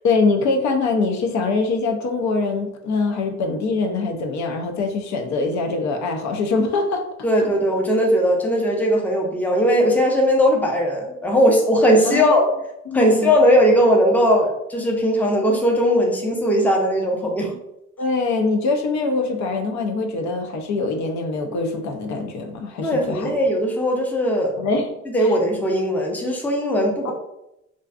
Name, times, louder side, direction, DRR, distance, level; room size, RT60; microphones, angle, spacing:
voice 1, 0.0-7.0 7.4-7.5 12.1-12.3 12.9-13.3 18.0-23.3 24.6-24.9 25.2-25.3 27.0-27.1, left 3 dB, 70° left, 4 dB, 0.5 m, -23 dB
voice 2, 7.2-12.5 12.9-17.6 22.8-24.5 25.1-27.1, equal, 5° left, 0 dB, 0.5 m, -18 dB
2.5 x 2.3 x 2.3 m, 0.84 s
cardioid pair, 90°, 30 cm